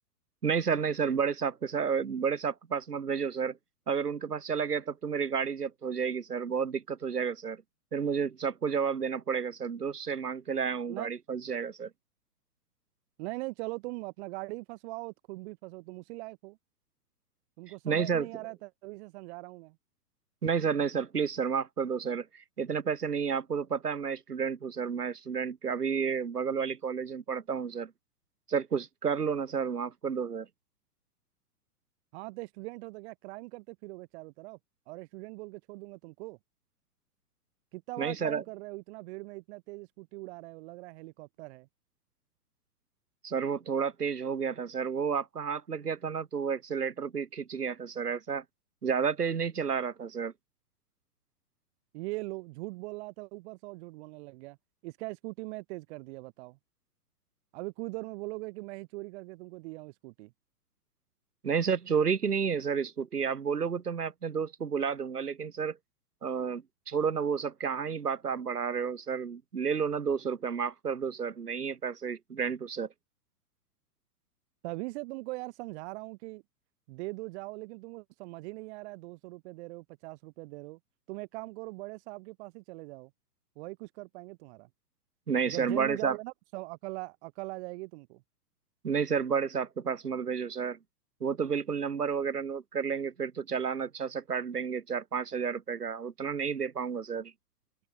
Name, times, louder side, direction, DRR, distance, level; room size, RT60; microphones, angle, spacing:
voice 1, 0.4-3.6 3.9-7.6 7.9-11.9 17.8-18.3 20.4-27.9 28.5-30.5 38.0-38.4 43.2-48.4 48.8-50.3 61.4-65.8 66.2-72.9 85.3-86.2 88.8-90.8 91.2-97.3, right 6 dB, 85° right, 5.1 m, -31 dB
voice 2, 13.2-16.6 17.6-19.8 32.1-34.6 34.9-36.4 37.7-41.7 51.9-54.6 54.8-56.6 57.5-60.3 74.6-76.4 76.9-80.8 81.1-83.1 83.6-84.7 85.5-88.2, right 23 dB, 45° right, 5.9 m, -41 dB
hypercardioid pair, 120°, 45 cm